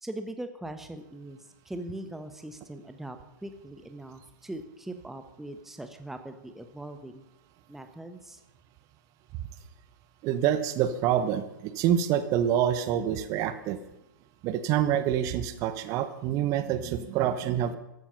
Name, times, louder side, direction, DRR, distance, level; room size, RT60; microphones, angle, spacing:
voice 1, 0.0-3.2 3.4-7.2 7.7-8.4, right 1 dB, 5° right, 8 dB, 1.0 m, -41 dB
voice 2, 10.2-13.8 14.4-17.8, right 10 dB, 30° right, 12 dB, 1.1 m, -26 dB
14.5 x 12.5 x 5.7 m, 0.92 s
figure-of-eight pair, 110°, 11 cm